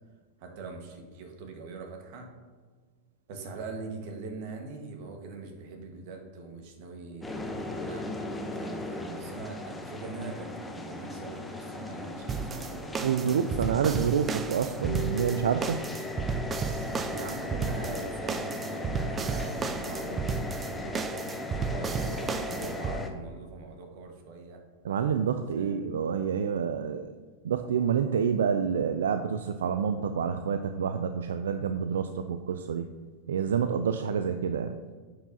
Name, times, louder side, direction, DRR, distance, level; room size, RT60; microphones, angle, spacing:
voice 1, 0.4-2.3 3.3-13.9 16.9-21.1 21.6-24.6 25.5-25.9, right 3 dB, 60° right, 3 dB, 1.3 m, -42 dB
sound 1, 7.2-23.1, left 2 dB, 10° left, 0.7 m, -37 dB
sound 2, 12.3-23.0, right 5 dB, 25° right, 0.5 m, -33 dB
voice 2, 13.0-15.8 24.8-27.1 27.4-32.9 33.3-34.7, right 7 dB, 85° right, 8 dB, 0.3 m, -28 dB
10.0 x 4.8 x 2.7 m, 1.5 s
hypercardioid pair, 110°, 0 cm